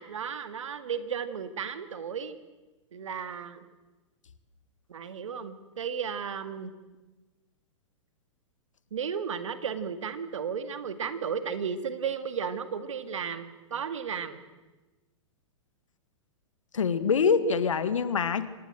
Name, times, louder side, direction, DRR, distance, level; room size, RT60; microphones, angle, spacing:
voice 1, 0.0-2.4 2.9-3.6 4.9-6.7 8.9-14.4, right 7 dB, 70° right, 10 dB, 2.1 m, -34 dB
voice 2, 16.7-18.5, left 6 dB, 75° left, 13 dB, 1.8 m, -25 dB
26.0 x 19.0 x 7.8 m, 1.2 s
figure-of-eight pair, 110°, 17 cm